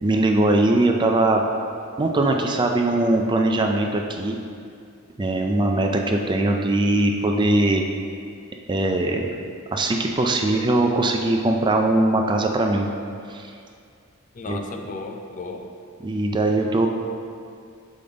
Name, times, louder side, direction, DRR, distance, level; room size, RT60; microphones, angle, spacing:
voice 1, 0.0-1.4 2.0-4.4 5.2-7.8 8.7-9.3 9.7-12.9 13.3-13.4 14.5-14.6 16.0-16.9, right 2 dB, 20° right, 2 dB, 0.4 m, -21 dB
voice 2, 14.3-15.7, left 3 dB, 35° left, 4 dB, 0.4 m, -34 dB
6.8 x 5.0 x 3.9 m, 2.3 s
head